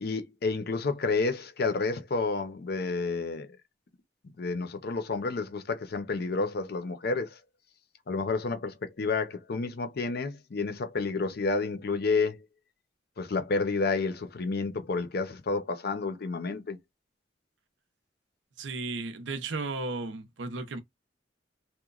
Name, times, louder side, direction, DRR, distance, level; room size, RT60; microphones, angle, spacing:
voice 1, 0.0-3.5 4.4-7.4 8.1-12.4 13.2-16.8, left 4 dB, 55° left, 0.5 m, -30 dB
voice 2, 18.6-20.8, right 3 dB, 85° right, 0.6 m, -34 dB
2.9 x 2.1 x 2.3 m
head